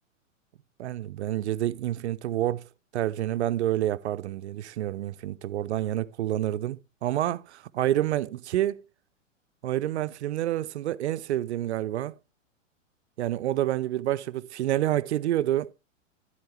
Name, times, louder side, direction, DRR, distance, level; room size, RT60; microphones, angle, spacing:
voice 1, 0.8-2.6 2.9-8.8 9.6-12.1 13.2-15.7, right 13 dB, 60° right, 0.5 m, -28 dB
10.0 x 7.9 x 3.2 m
figure-of-eight pair, 105°, 39 cm